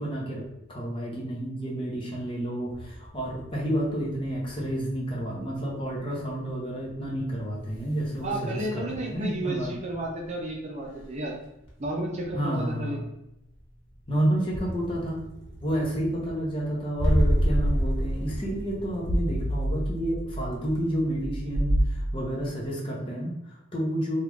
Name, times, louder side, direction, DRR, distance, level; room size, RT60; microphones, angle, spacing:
voice 1, 0.0-9.8 12.3-13.0 14.1-15.2 15.6-24.2, right 1 dB, 25° left, -3 dB, 0.8 m, -30 dB
sound 1, 2.7-10.3 10.5-21.9, equal, 70° left, 1.1 m, -32 dB
voice 2, 8.2-11.3 11.8-13.0, right 1 dB, 35° right, -1 dB, 0.6 m, -32 dB
sound 2, 19.0-22.4, right 1 dB, 45° left, 0.5 m, -28 dB
3.5 x 2.4 x 3.1 m, 0.84 s
head